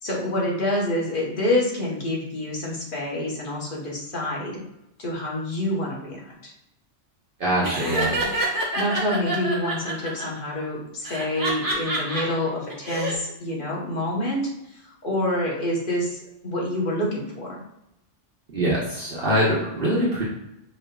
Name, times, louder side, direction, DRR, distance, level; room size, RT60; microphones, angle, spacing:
voice 1, 0.0-4.6 5.0-6.5 8.7-17.6, left 1 dB, 45° left, -4 dB, 1.2 m, -27 dB
voice 2, 7.4-8.1 18.5-20.2, equal, 50° right, -7 dB, 1.0 m, -23 dB
Laughter, 7.6-10.2 11.0-12.2 12.7-13.1, right 1 dB, 20° right, 0.9 m, -27 dB
5.4 x 3.0 x 2.3 m, 0.84 s
omnidirectional pair, 1.3 m